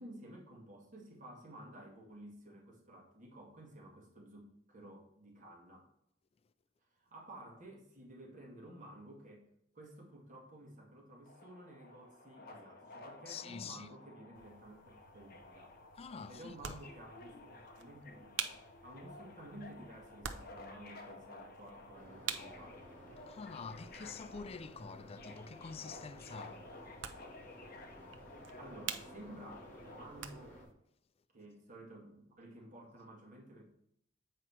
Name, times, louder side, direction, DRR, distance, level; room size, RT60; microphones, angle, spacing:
voice 1, 0.0-5.9 6.8-9.5 9.7-15.7 16.3-22.9 28.6-30.6 31.3-33.6, right 1 dB, 40° right, 2.1 m, -53 dB
Subway metro underground, 11.3-30.1, left 2 dB, 50° left, 1.1 m, -54 dB
voice 2, 13.3-13.9 16.0-16.8 23.3-26.7, left 5 dB, 30° left, 0.3 m, -47 dB
sound 1, 14.3-30.7, right 8 dB, 70° right, 0.7 m, -49 dB
sound 2, 21.9-30.6, equal, 10° left, 2.9 m, -55 dB
7.9 x 4.8 x 4.4 m
head